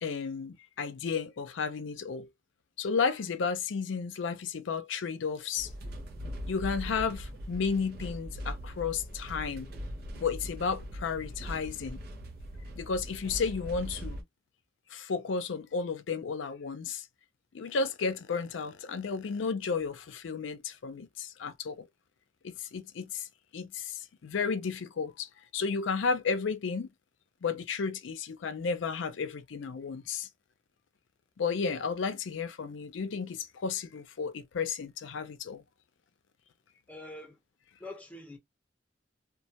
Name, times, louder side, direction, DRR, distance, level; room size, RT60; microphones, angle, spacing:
voice 1, 0.0-2.3 2.8-5.7 6.5-9.7 10.2-12.0 12.8-14.2 14.9-17.1 17.5-21.9 22.4-23.3 23.5-26.9 27.4-30.3 31.4-35.6, left 5 dB, 80° left, 0.4 m, -33 dB
sound 1, 5.6-14.2, equal, 55° right, 0.5 m, -40 dB
voice 2, 36.9-37.4 37.8-38.4, left 2 dB, 10° left, 0.8 m, -44 dB
2.2 x 2.1 x 2.7 m
head